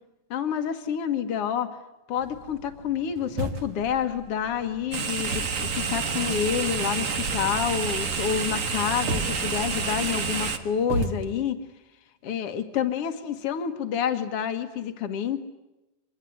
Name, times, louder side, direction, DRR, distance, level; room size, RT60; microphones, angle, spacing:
voice 1, 0.3-1.7 2.1-11.6 12.2-15.4, left 8 dB, 50° left, 9 dB, 2.2 m, -28 dB
sound 1, 2.2-11.3, right 2 dB, 50° right, 2.0 m, -37 dB
sound 2, 4.9-10.6, right 5 dB, 70° right, 0.7 m, -28 dB
24.5 x 21.0 x 9.4 m, 0.99 s
omnidirectional pair, 3.7 m